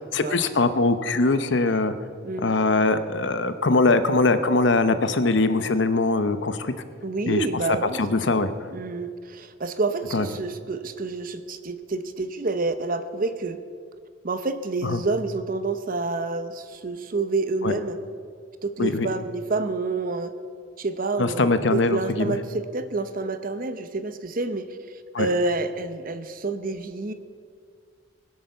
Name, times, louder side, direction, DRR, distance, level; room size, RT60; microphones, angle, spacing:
voice 1, 0.1-1.9 2.4-6.7 7.3-8.5 10.1-10.3 14.8-15.0 17.6-17.7 18.8-19.1 21.2-22.4 25.1-25.3, left 3 dB, 60° left, 11 dB, 0.8 m, -22 dB
voice 2, 7.0-8.0 8.3-8.4 8.7-13.6 14.2-18.0 18.6-20.3 20.8-24.7 25.2-27.1, right 3 dB, 45° right, 11 dB, 0.8 m, -28 dB
21.5 x 7.9 x 6.8 m, 2.1 s
head